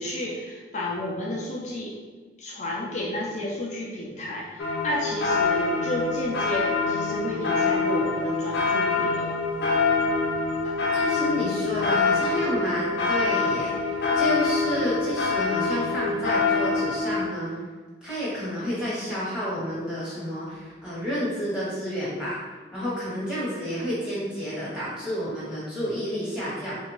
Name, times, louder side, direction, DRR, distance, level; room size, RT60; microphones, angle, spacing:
voice 1, 0.0-1.9 2.4-9.3 10.6-10.7, left 1 dB, 40° left, -4 dB, 0.4 m, -31 dB
sound 1, 4.6-17.3, left 4 dB, 75° left, 0.7 m, -25 dB
voice 2, 10.8-17.5 18.0-22.4 22.7-26.7, equal, 5° right, -9 dB, 1.2 m, -30 dB
3.3 x 2.5 x 3.1 m, 1.4 s
head